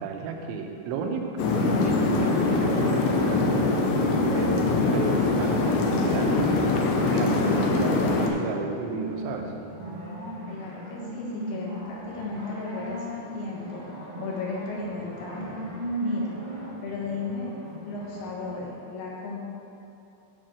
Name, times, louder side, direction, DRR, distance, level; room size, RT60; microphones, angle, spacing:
voice 1, 0.0-3.7 4.3-9.5, right 5 dB, 80° right, 3 dB, 3.0 m, -33 dB
sound 1, 1.4-8.3, left 3 dB, 80° left, 3.0 m, -23 dB
sound 2, 1.7-18.5, right 1 dB, 65° right, 0.4 m, -38 dB
voice 2, 10.5-13.8 14.2-15.6 16.0-16.3 16.8-17.5 17.8-19.4, left 3 dB, 60° left, -4 dB, 2.7 m, -35 dB
9.4 x 4.7 x 7.6 m, 2.8 s
omnidirectional pair, 5.6 m